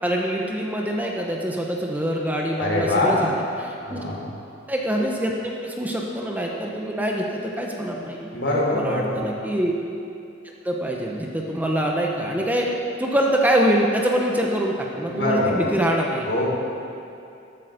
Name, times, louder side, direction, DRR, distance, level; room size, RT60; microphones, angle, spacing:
voice 1, 0.0-4.0 4.7-8.3 8.7-9.8 10.6-12.7 13.0-16.3, right 1 dB, 10° right, -1 dB, 1.1 m, -24 dB
voice 2, 2.6-3.1 3.9-4.2 8.3-9.2 15.1-15.6 16.3-16.4, left 2 dB, 65° left, -4 dB, 3.9 m, -23 dB
14.0 x 12.5 x 5.2 m, 2.6 s
head